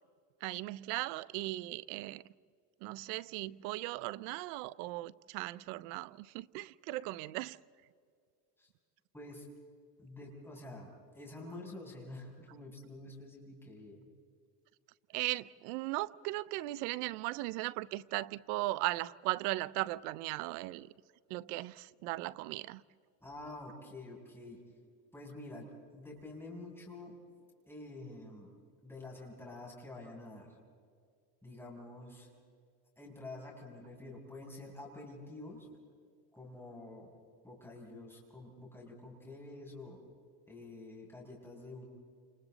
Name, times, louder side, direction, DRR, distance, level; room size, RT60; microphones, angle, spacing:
voice 1, 0.4-2.2 2.8-7.6 15.1-20.9 21.3-22.8, right 19 dB, 75° right, 0.8 m, -37 dB
voice 2, 9.1-9.5 10.0-14.0 23.2-24.6 25.1-27.2 27.7-28.5 28.8-30.6 31.4-32.3 33.0-35.7 36.3-37.1 37.4-40.0 40.5-41.8, left 2 dB, 5° left, 7.3 m, -48 dB
29.5 x 29.0 x 4.1 m
supercardioid pair, 120°, 46 cm